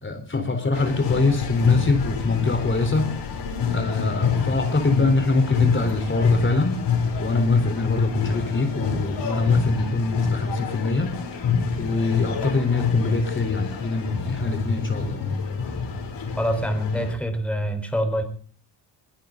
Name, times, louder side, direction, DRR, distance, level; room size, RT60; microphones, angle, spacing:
voice 1, 0.0-3.1 3.7-6.8 7.2-11.2 11.8-15.2, left 3 dB, 25° left, 6 dB, 4.0 m, -24 dB
sound 1, 0.7-17.1, left 6 dB, 60° left, 7.8 m, -27 dB
voice 2, 16.4-18.2, equal, ahead, 6 dB, 4.4 m, -25 dB
23.0 x 16.0 x 3.9 m, 0.42 s
hypercardioid pair, 70°, 49 cm